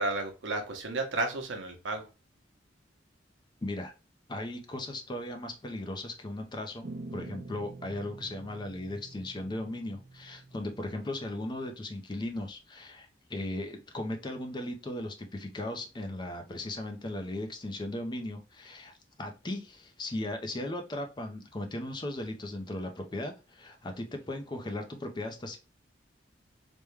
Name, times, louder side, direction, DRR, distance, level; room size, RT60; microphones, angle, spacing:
voice 1, 0.0-2.1, right 2 dB, 80° right, 0.8 m, -32 dB
voice 2, 3.6-3.9 4.3-25.6, left 1 dB, 25° left, 0.5 m, -37 dB
sound 1, 6.8-11.8, right 3 dB, 45° right, 0.4 m, -47 dB
3.4 x 2.1 x 3.1 m
head